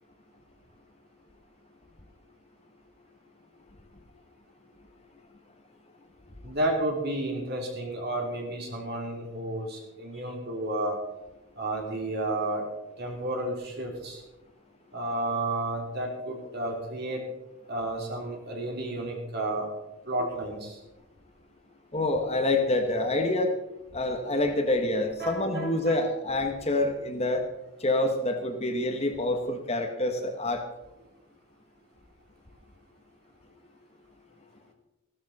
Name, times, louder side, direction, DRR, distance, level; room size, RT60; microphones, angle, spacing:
voice 1, 6.4-11.0 11.6-12.6 13.0-14.2 14.9-17.2 17.7-19.7 20.1-20.8 25.2-26.0, right 1 dB, 50° right, 0 dB, 3.5 m, -31 dB
voice 2, 21.9-23.5 23.9-27.4 27.8-30.6, left 2 dB, 30° left, 5 dB, 1.4 m, -27 dB
15.5 x 13.5 x 4.2 m, 1.0 s
head